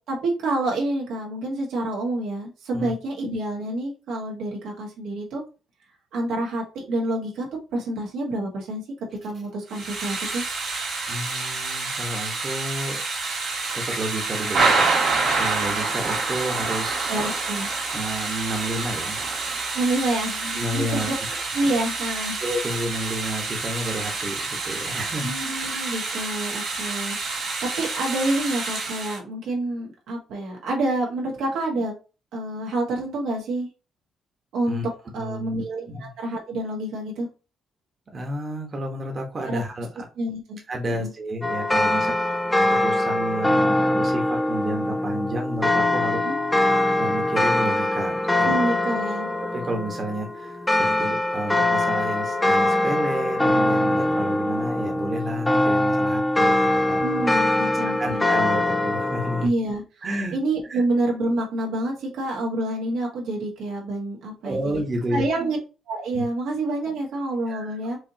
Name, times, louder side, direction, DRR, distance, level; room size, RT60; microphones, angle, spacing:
voice 1, 0.0-5.4 6.1-8.8 9.2-10.4 17.1-17.7 19.7-21.1 21.5-22.4 25.2-31.9 32.3-33.7 34.5-34.8 35.1-37.3 39.5-39.6 40.2-40.6 40.9-41.1 46.2-46.3 48.4-49.3 57.0-58.2 59.4-59.8 60.3-64.7 65.1-65.6 65.9-68.0, right 2 dB, 85° right, -1 dB, 1.4 m, -28 dB
Thunder / Rain, 9.7-29.2, right 3 dB, 65° right, 2.2 m, -27 dB
voice 2, 11.1-13.0 13.7-14.9 15.2-17.2 17.9-19.2 20.5-21.1 22.4-25.3 34.7-34.8 35.1-36.1 38.1-39.9 40.7-42.1 42.7-46.2 46.5-48.5 49.5-57.0 58.0-59.5 60.0-60.3 60.7-60.8 64.4-65.2 66.1-66.2 67.5-67.8, right 1 dB, 40° right, 1 dB, 1.2 m, -31 dB
sound 1, 41.4-59.5, left 1 dB, 10° left, 0.4 m, -22 dB
4.8 x 2.6 x 2.8 m, 0.32 s
cardioid pair, 90°, 0 cm